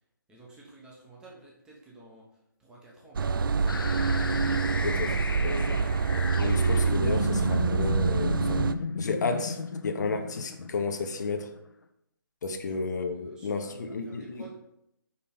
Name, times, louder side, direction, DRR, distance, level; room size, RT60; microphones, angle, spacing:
voice 1, 0.3-2.3 2.6-3.9 12.6-14.6, right 2 dB, 5° right, -4 dB, 1.1 m, -52 dB
sound 1, 3.1-8.7, right 5 dB, 70° right, 0.4 m, -26 dB
sound 2, 3.7-11.6, left 4 dB, 80° left, 0.7 m, -34 dB
voice 2, 4.8-5.9 6.4-8.7 9.0-11.5 12.4-14.4, left 4 dB, 55° left, 5 dB, 0.9 m, -32 dB
5.4 x 5.3 x 4.3 m, 0.80 s
hypercardioid pair, 155°, 12 cm